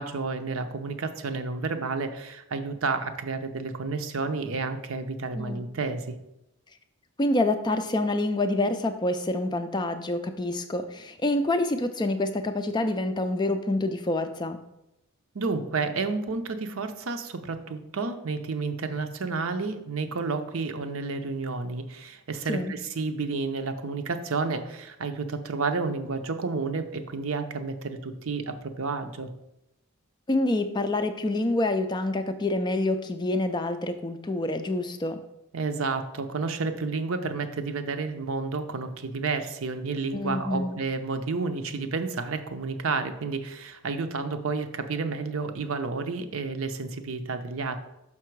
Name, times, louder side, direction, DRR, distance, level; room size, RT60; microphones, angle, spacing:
voice 1, 0.0-6.1 15.3-29.3 35.5-47.8, right 4 dB, 65° right, 8 dB, 0.6 m, -31 dB
voice 2, 7.2-14.6 22.5-22.7 30.3-35.2 40.1-40.8, left 2 dB, 20° left, 8 dB, 0.3 m, -27 dB
5.9 x 5.5 x 4.6 m, 0.89 s
head